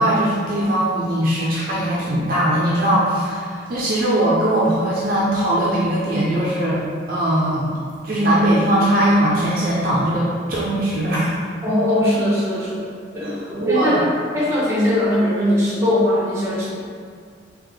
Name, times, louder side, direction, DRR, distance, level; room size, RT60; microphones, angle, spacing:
voice 1, 0.0-6.8 7.1-7.7 8.0-11.5 13.2-14.0, right 1 dB, 45° right, -6 dB, 0.5 m, -20 dB
voice 2, 11.6-12.9 13.1-14.1 14.3-16.7, left 1 dB, 15° right, -8 dB, 1.0 m, -20 dB
3.9 x 2.9 x 3.2 m, 2.1 s
head